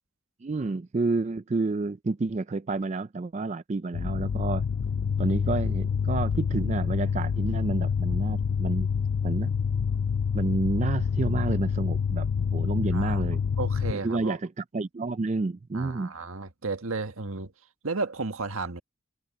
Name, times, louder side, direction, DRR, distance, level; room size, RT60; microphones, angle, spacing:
voice 1, 0.4-4.6 5.2-8.9 9.2-9.5 10.3-13.4 13.9-16.1, right 3 dB, 30° right, 0.4 m, -30 dB
sound 1, 3.9-13.9, left 6 dB, 60° left, 0.4 m, -27 dB
voice 2, 12.9-13.2 13.6-14.4 15.7-17.5 17.8-18.8, right 3 dB, 80° right, 1.5 m, -33 dB
head